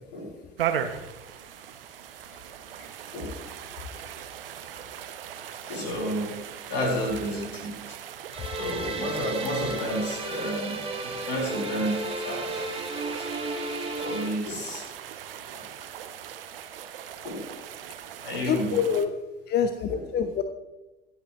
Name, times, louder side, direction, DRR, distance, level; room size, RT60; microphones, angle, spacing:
sound 1, 0.6-19.1, right 9 dB, 70° right, 0.9 m, -39 dB
voice 1, 3.1-3.5 5.6-6.4 6.7-8.0 8.6-12.6 13.1-13.3 14.0-14.9 15.5-15.7 17.2-17.5 18.2-18.8 19.9-20.0, equal, 65° left, -1 dB, 4.1 m, -31 dB
sound 2, 8.3-14.3, right 2 dB, 20° right, 2.2 m, -33 dB
voice 2, 18.5-19.1 19.5-20.4, left 7 dB, 35° left, 8 dB, 0.8 m, -26 dB
25.0 x 8.5 x 3.1 m, 1.0 s
figure-of-eight pair, 65°, 29 cm